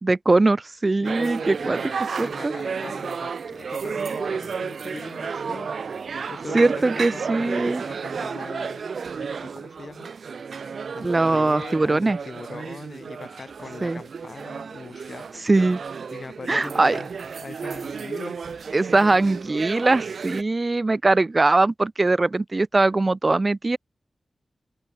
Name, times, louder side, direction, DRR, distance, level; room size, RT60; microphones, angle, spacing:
voice 1, 0.0-1.8 2.2-2.5 6.5-7.8 11.0-12.2 13.8-14.0 15.4-15.8 16.5-17.0 18.7-23.8, right 2 dB, 30° right, 0.5 m, -21 dB
voice 2, 1.0-8.8 9.2-10.1 10.6-15.5 16.1-17.1 17.4-18.7, left 4 dB, 55° left, 5.5 m, -41 dB
sound 1, 1.0-20.4, right 5 dB, 80° right, 2.2 m, -32 dB
open air
wide cardioid pair, 125°, 0 cm